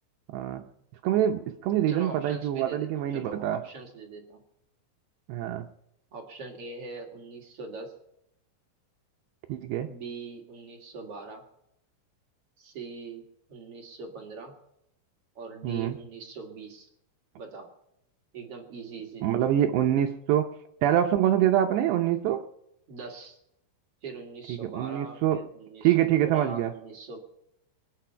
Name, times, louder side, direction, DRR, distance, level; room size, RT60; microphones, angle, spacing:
voice 1, 0.3-0.6 1.0-3.6 5.3-5.7 9.5-9.9 15.6-16.0 19.2-20.5 20.8-22.5 24.5-25.4 25.8-26.7, right 11 dB, 80° right, 5 dB, 2.5 m, -25 dB
voice 2, 1.9-4.4 6.1-7.9 9.9-11.4 12.6-13.2 13.5-14.6 15.3-16.9 17.3-17.7 18.3-19.7 22.9-23.4 24.0-27.2, right 4 dB, 65° right, 1 dB, 1.5 m, -42 dB
24.0 x 9.3 x 5.7 m, 0.81 s
omnidirectional pair, 5.8 m